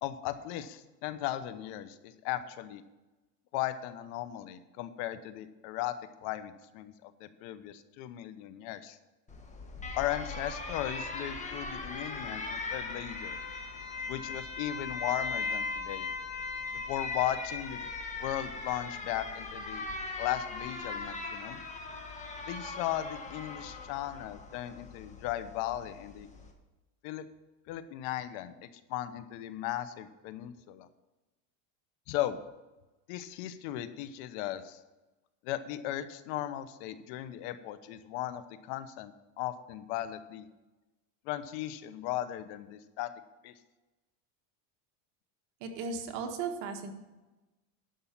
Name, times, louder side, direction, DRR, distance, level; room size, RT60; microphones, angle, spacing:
voice 1, 0.0-2.8 3.5-9.0 10.0-13.4 14.1-16.1 16.7-17.8 18.2-19.8 20.2-21.6 22.5-26.3 27.0-27.2 27.7-30.9 32.1-32.4 33.1-34.8 35.4-40.5 41.2-43.1 43.4-43.5, left 13 dB, 60° left, 12 dB, 1.0 m, -37 dB
Alarm, 9.3-26.5, left 3 dB, 15° left, 1.3 m, -39 dB
voice 2, 45.6-46.9, right 5 dB, 55° right, 4 dB, 1.6 m, -36 dB
11.5 x 5.6 x 7.2 m, 1.1 s
supercardioid pair, 140°, 47 cm